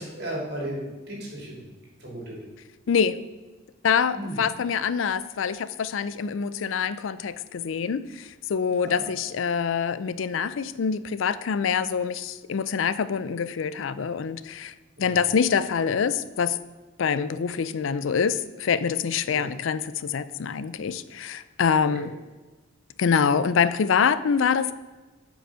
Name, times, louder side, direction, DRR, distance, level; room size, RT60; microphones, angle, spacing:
voice 1, 0.0-1.7 2.0-2.4 4.1-4.4 8.8-9.0 15.0-15.2 19.3-19.5 21.9-22.1, right 1 dB, 55° right, -2 dB, 2.8 m, -35 dB
voice 2, 2.9-3.2 3.8-16.6 17.0-22.1 23.0-24.7, left 6 dB, 80° left, 15 dB, 0.4 m, -25 dB
8.0 x 5.2 x 6.2 m, 1.2 s
head